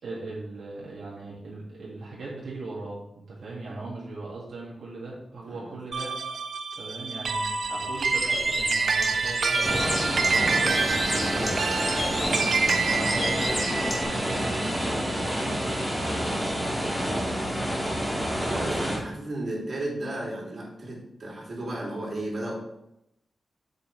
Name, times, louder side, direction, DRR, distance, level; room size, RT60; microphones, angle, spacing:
voice 1, 0.0-6.4 6.8-13.7 14.0-16.8, right 2 dB, 80° right, -5 dB, 2.0 m, -39 dB
sound 1, 5.9-16.5, right 4 dB, 65° right, 0.5 m, -28 dB
Bird, 7.9-14.0, left 2 dB, 25° left, 1.8 m, -33 dB
sound 2, 9.6-19.0, equal, 5° left, 2.2 m, -28 dB
voice 2, 17.0-17.6 18.2-22.6, right 1 dB, 45° right, -4 dB, 2.8 m, -34 dB
7.5 x 7.0 x 3.3 m, 0.82 s
wide cardioid pair, 155°, 0 cm